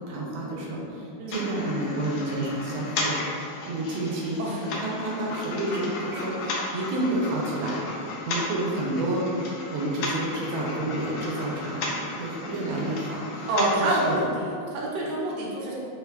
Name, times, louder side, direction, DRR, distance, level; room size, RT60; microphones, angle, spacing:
voice 1, 0.1-14.2, right 1 dB, 85° right, -3 dB, 1.5 m, -30 dB
voice 2, 1.2-1.5 4.4-4.6 13.5-15.7, right 1 dB, 70° right, -4 dB, 1.3 m, -27 dB
sound 1, 1.3-14.2, left 2 dB, 70° left, 1.1 m, -34 dB
4.3 x 2.3 x 3.2 m, 2.5 s
omnidirectional pair, 2.2 m